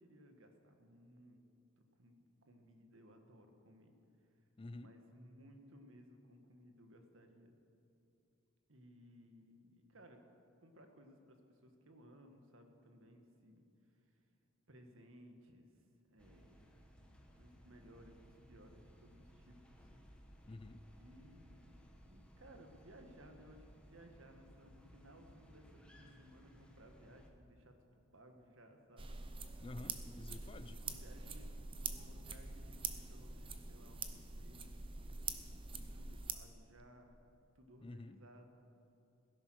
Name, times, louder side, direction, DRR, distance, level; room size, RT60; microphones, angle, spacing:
voice 1, 0.0-1.4 1.8-3.9 4.7-7.5 8.7-10.2 10.6-13.6 14.0-14.1 14.7-15.7 16.1-16.7 17.0-19.9 21.0-29.2 29.4-30.0 30.8-34.9 35.7-37.2 37.5-38.4, equal, 75° right, 5 dB, 1.6 m, -61 dB
voice 2, 4.6-4.9 20.5-20.8 29.6-30.8 37.8-38.2, left 2 dB, 25° left, 12 dB, 0.4 m, -50 dB
sound 1, 16.2-27.3, equal, 5° left, 1.2 m, -61 dB
sound 2, 29.0-36.3, right 4 dB, 25° right, 0.8 m, -45 dB
16.5 x 11.0 x 6.3 m, 2.7 s
head